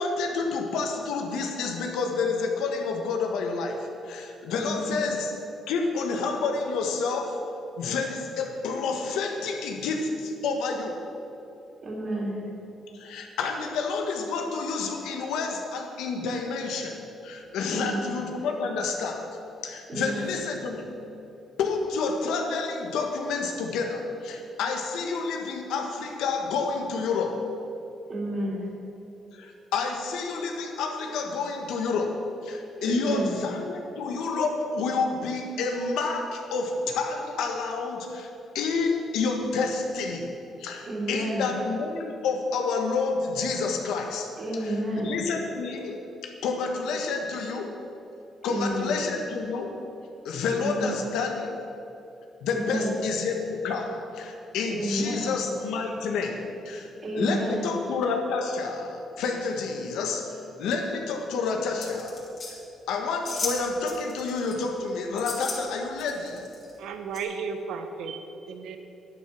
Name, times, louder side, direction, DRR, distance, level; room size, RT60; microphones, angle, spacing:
voice 1, 0.0-5.3 5.7-7.5 7.8-11.1 12.9-19.4 19.6-21.0 21.6-27.4 29.3-38.3 38.5-40.3 40.6-44.3 44.6-47.7 48.4-49.7 50.2-51.5 52.4-56.9 57.1-62.2 62.9-66.5, left 4 dB, 90° left, 3 dB, 1.5 m, -29 dB
voice 2, 4.6-5.0 11.8-12.4 17.6-18.1 19.9-20.2 28.1-28.6 32.8-33.4 40.8-41.5 44.4-45.1 48.4-48.9 50.5-51.0 52.5-52.9 54.7-55.3 57.0-57.7, right 1 dB, 45° right, -4 dB, 3.2 m, -30 dB
sound 1, 61.8-62.5 63.3-63.6 63.9-64.6 65.2-65.6 66.0-66.7 67.1-67.2, left 3 dB, 45° left, 3.3 m, -34 dB
voice 3, 66.8-68.8, right 5 dB, 80° right, 7 dB, 1.0 m, -34 dB
11.0 x 10.0 x 6.1 m, 2.8 s
cardioid pair, 90°, 0 cm